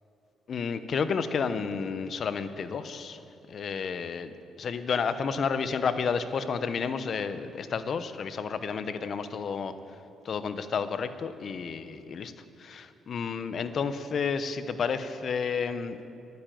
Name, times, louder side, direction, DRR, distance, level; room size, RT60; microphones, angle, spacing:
voice 1, 0.5-3.2 3.5-9.7 10.2-12.3 12.6-16.0, left 6 dB, 55° left, 11 dB, 0.8 m, -31 dB
11.0 x 9.5 x 9.1 m, 2.8 s
cardioid pair, 90°, 0 cm